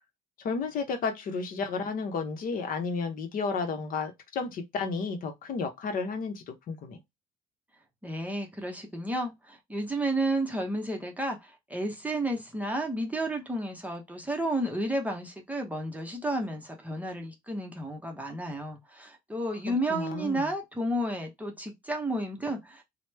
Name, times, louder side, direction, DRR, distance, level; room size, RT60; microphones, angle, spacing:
voice 1, 0.4-7.0 19.9-20.5, left 4 dB, 55° left, 0.8 m, -32 dB
voice 2, 8.0-22.8, right 1 dB, 10° right, 0.6 m, -32 dB
3.0 x 2.0 x 3.2 m
cardioid pair, 110°, 17 cm